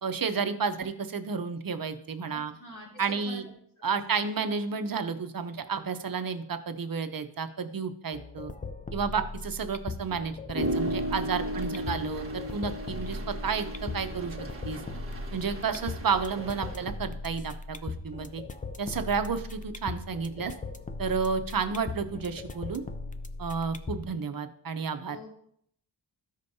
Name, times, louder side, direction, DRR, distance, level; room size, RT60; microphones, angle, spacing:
voice 1, 0.0-2.5 3.0-3.5 3.8-8.5 8.9-14.4 14.6-14.8 15.3-18.4 18.8-20.5 21.0-22.8 23.4-25.2, right 5 dB, 45° right, 8 dB, 0.7 m, -31 dB
voice 2, 2.3-3.4 3.9-4.3 11.4-11.7 25.1-25.3, left 2 dB, 85° left, -4 dB, 2.3 m, -46 dB
sound 1, 8.1-24.1, left 3 dB, 20° left, 0.4 m, -39 dB
sound 2, 10.5-16.9, right 1 dB, 30° right, 1.3 m, -35 dB
14.0 x 5.1 x 2.7 m, 0.67 s
wide cardioid pair, 105°, 46 cm